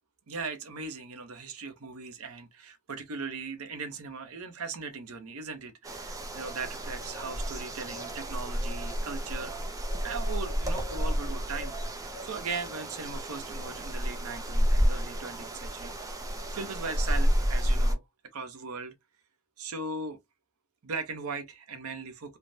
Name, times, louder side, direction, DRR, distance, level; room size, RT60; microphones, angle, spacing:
voice 1, 0.3-16.1 16.5-18.0 18.3-18.9 19.6-20.2 20.8-22.4, right 4 dB, 85° right, 0.7 m, -39 dB
sound 1, 5.8-17.9, equal, 15° right, 0.5 m, -30 dB
3.3 x 2.1 x 2.6 m
head